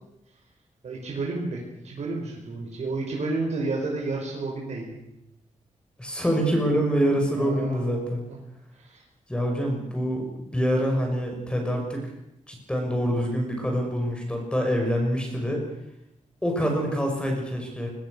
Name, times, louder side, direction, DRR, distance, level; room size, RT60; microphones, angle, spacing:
voice 1, 0.8-5.0 7.3-7.9 8.3-8.4 8.8-9.0, right 3 dB, 65° right, -1 dB, 6.0 m, -31 dB
voice 2, 6.0-8.3 9.3-12.0 12.5-15.6 16.4-17.9, equal, 10° left, 1 dB, 6.2 m, -26 dB
25.5 x 22.5 x 6.6 m, 0.83 s
wide cardioid pair, 160°, 12 cm